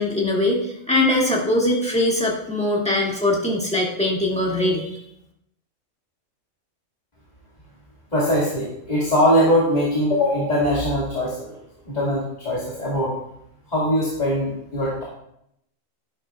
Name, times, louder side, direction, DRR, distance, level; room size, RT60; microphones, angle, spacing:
voice 1, 0.0-5.0, left 1 dB, 5° left, -3 dB, 2.1 m, -21 dB
voice 2, 8.1-11.6 11.9-13.1 13.7-15.0, equal, 30° left, -7 dB, 2.2 m, -21 dB
11.5 x 11.0 x 2.4 m, 0.76 s
omnidirectional pair, 1.5 m